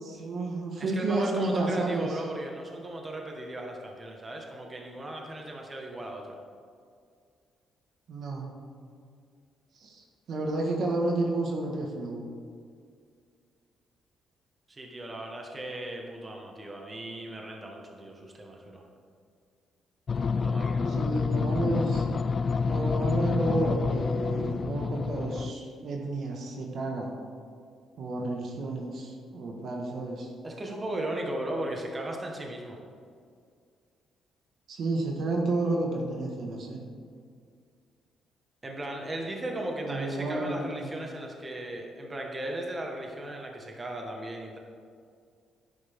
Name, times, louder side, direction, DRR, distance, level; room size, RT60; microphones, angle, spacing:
voice 1, 0.0-2.2 8.1-8.5 9.8-12.3 20.9-22.2 22.7-27.1 28.0-30.3 34.7-36.8 39.8-40.8, right 2 dB, 65° right, 0 dB, 1.6 m, -31 dB
voice 2, 0.8-6.4 14.7-18.8 20.3-21.2 30.4-32.8 38.6-44.6, right 1 dB, 25° right, 1 dB, 1.6 m, -36 dB
sound 1, 20.1-25.5, left 4 dB, 45° left, 0.3 m, -28 dB
11.0 x 9.3 x 3.7 m, 2.2 s
cardioid pair, 90°, 0 cm